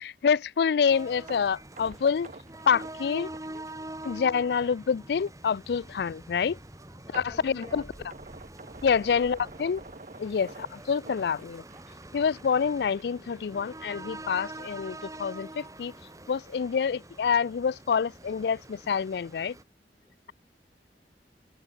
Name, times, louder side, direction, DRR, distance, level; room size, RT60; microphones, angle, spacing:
voice 1, 0.0-2.3 2.7-3.3 4.0-6.6 7.1-7.8 8.8-9.8 10.2-10.5 10.9-11.6 12.1-15.9 16.3-19.6, left 6 dB, 65° left, 0.3 m, -27 dB
sound 1, 0.9-19.6, right 1 dB, 20° right, 5.2 m, -45 dB
sound 2, 1.3-4.3 4.6-4.8 5.3-5.4 7.1-12.1 12.3-12.6 13.0-13.1, right 3 dB, 45° right, 1.2 m, -47 dB
voice 2, 3.8-4.2 6.2-6.3 7.0-8.4 9.0-9.5 10.2-10.6 20.0-20.3, left 1 dB, 15° left, 3.5 m, -53 dB
head